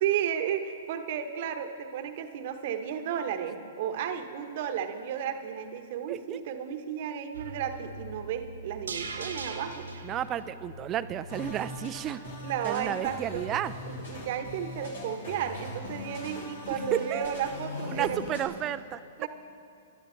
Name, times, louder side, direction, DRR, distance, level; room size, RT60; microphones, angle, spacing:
voice 1, 0.0-10.1 12.4-13.4 13.9-18.3 19.2-19.3, right 9 dB, 55° right, 7 dB, 1.0 m, -33 dB
voice 2, 6.1-6.4 10.0-12.3 12.6-13.7 16.9-17.3 17.9-19.0, right 11 dB, 30° right, 14 dB, 0.4 m, -32 dB
sound 1, 7.3-11.5 11.9-12.0, right 3 dB, 85° right, 1.4 m, -41 dB
sound 2, 11.3-18.5, left 2 dB, 75° left, 2.9 m, -40 dB
21.5 x 12.0 x 3.2 m, 2.4 s
hypercardioid pair, 120°, 0 cm